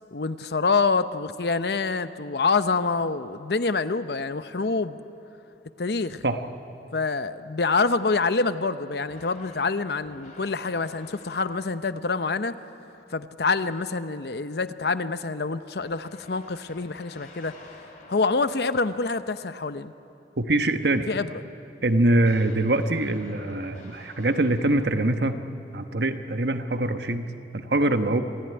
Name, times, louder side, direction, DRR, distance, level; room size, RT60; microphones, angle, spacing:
voice 1, 0.1-5.0 5.8-6.2 6.9-12.6 13.1-17.5 18.1-19.9 21.1-21.3, left 4 dB, 65° left, 12 dB, 0.7 m, -26 dB
sound 1, 9.0-12.0 15.8-18.7 22.2-25.3, left 2 dB, 50° left, 4.1 m, -50 dB
voice 2, 20.4-21.1 21.8-25.4 25.7-27.3 27.5-28.2, right 2 dB, 65° right, 8 dB, 1.1 m, -23 dB
26.0 x 14.5 x 9.8 m, 2.8 s
head